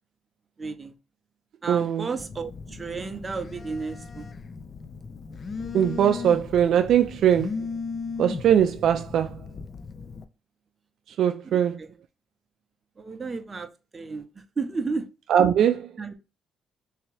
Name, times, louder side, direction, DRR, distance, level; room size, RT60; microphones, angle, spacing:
voice 1, 0.6-0.9 1.6-4.3 11.4-11.9 13.0-15.1 16.0-16.1, right 4 dB, 30° right, 0.7 m, -33 dB
voice 2, 1.7-2.1 5.7-7.6 8.2-9.4 11.2-11.8 15.3-15.9, right 9 dB, 70° right, 0.3 m, -21 dB
Telephone, 2.2-10.2, left 5 dB, 45° left, 0.4 m, -37 dB
3.4 x 2.9 x 3.2 m
cardioid pair, 90°, 0 cm